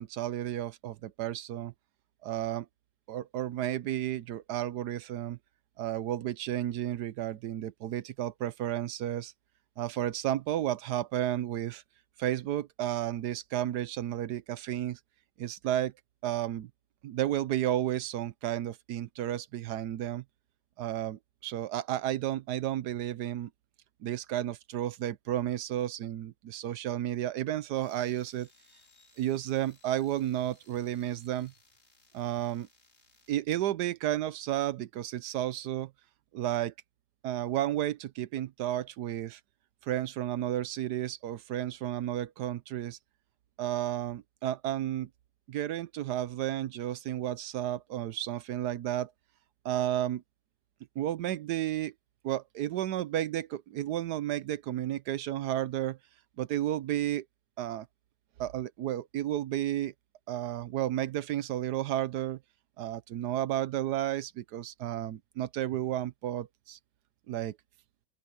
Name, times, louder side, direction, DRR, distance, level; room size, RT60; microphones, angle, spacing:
voice 1, 0.0-1.7 2.2-2.7 3.1-5.4 5.8-9.3 9.8-11.8 12.2-15.0 15.4-15.9 16.2-16.7 17.0-20.2 20.8-23.5 24.0-28.5 29.2-31.5 32.1-32.7 33.3-35.9 36.3-36.7 37.2-39.4 39.8-43.0 43.6-45.1 45.5-49.1 49.6-50.2 51.0-51.9 52.2-56.0 56.4-57.2 57.6-57.9 58.4-59.9 60.3-62.4 62.8-66.8 67.3-67.6, right 12 dB, 80° right, 1.3 m, -32 dB
sound 1, 27.8-33.3, left 3 dB, 40° left, 3.1 m, -63 dB
open air
omnidirectional pair, 1.8 m